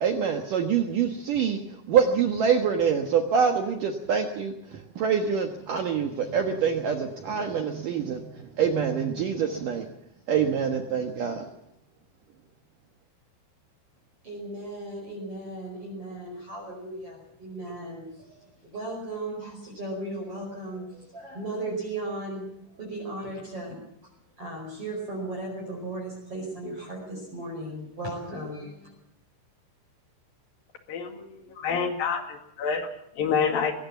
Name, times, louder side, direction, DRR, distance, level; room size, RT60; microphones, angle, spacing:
voice 1, 0.0-9.9 10.3-11.5, right 7 dB, 65° right, 5 dB, 2.1 m, -25 dB
voice 2, 14.2-22.5 22.7-23.8 24.4-28.9, right 2 dB, 30° right, -1 dB, 5.7 m, -36 dB
voice 3, 30.9-31.3 31.6-32.8 33.2-33.7, left 6 dB, 55° left, 6 dB, 3.4 m, -27 dB
22.0 x 18.0 x 7.3 m, 0.80 s
omnidirectional pair, 5.6 m